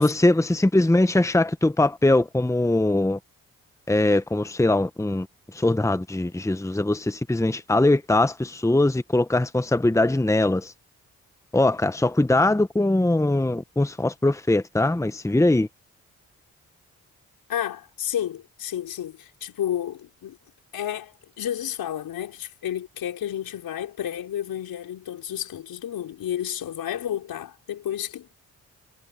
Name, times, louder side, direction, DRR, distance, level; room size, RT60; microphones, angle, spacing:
voice 1, 0.0-3.2 3.9-5.3 5.5-10.7 11.5-15.7, left 2 dB, 10° left, 1.2 m, -21 dB
voice 2, 17.5-20.4 20.7-28.3, left 10 dB, 75° left, 5.3 m, -31 dB
supercardioid pair, 45°, 35 cm